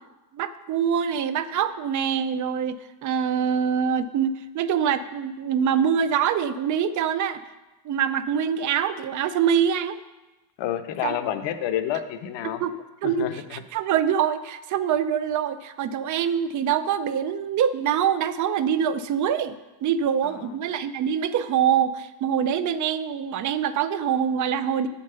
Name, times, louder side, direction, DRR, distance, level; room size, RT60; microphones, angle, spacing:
voice 1, 0.3-7.4 7.8-10.0 11.0-11.1 12.6-12.7 13.0-19.5 19.8-24.9, right 8 dB, 45° right, 13 dB, 0.4 m, -24 dB
voice 2, 10.6-12.6 13.0-13.6 20.2-20.6, left 10 dB, 70° left, 9 dB, 0.9 m, -29 dB
7.7 x 7.1 x 6.8 m, 1.1 s
cardioid pair, 175°, 46 cm